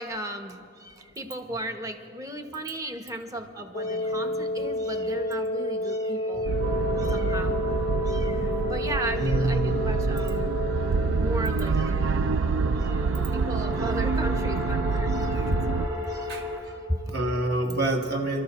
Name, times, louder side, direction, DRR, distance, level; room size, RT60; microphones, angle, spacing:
voice 1, 0.0-6.6 7.0-7.6 8.0-10.6 11.2-17.0, right 1 dB, 15° right, 5 dB, 0.8 m, -36 dB
Wind instrument woodwind instrument, 3.7-11.6, left 1 dB, 40° left, 0.4 m, -30 dB
voice 2, 3.9-4.7 5.1-5.2 6.5-7.1 9.2-9.8 16.3-16.4 17.1-18.4, right 1 dB, 50° right, 1 dB, 1.4 m, -29 dB
sound 1, 6.5-15.9, right 5 dB, 70° right, 0.4 m, -27 dB
sound 2, 6.6-16.6, left 3 dB, 35° right, 4.2 m, -35 dB
28.0 x 13.0 x 3.0 m, 2.5 s
head